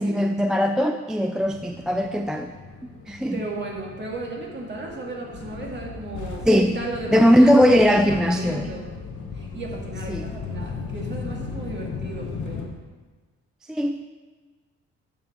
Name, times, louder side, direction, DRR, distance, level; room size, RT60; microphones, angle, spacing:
voice 1, 0.0-2.5 3.1-3.4 6.5-6.8 7.1-8.7 10.1-10.3 13.7-14.1, equal, ahead, 5 dB, 0.3 m, -19 dB
sound 1, 1.4-12.7, left 5 dB, 75° left, 1.3 m, -36 dB
voice 2, 3.3-8.9 9.3-12.6, right 2 dB, 35° right, -1 dB, 2.1 m, -35 dB
10.5 x 5.6 x 4.3 m, 1.4 s
cardioid pair, 90°, 30 cm